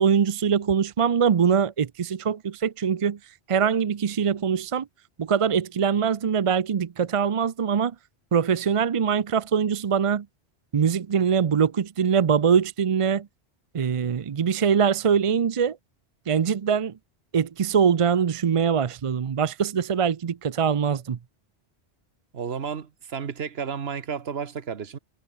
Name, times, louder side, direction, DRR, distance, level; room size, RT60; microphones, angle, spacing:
voice 1, 0.0-3.2 3.5-4.8 5.2-7.9 8.3-10.2 10.7-13.3 13.7-15.8 16.3-16.9 17.3-21.2, right 7 dB, 45° right, 0.5 m, -23 dB
voice 2, 22.3-25.0, right 7 dB, 70° right, 1.4 m, -32 dB
omnidirectional pair, 1.1 m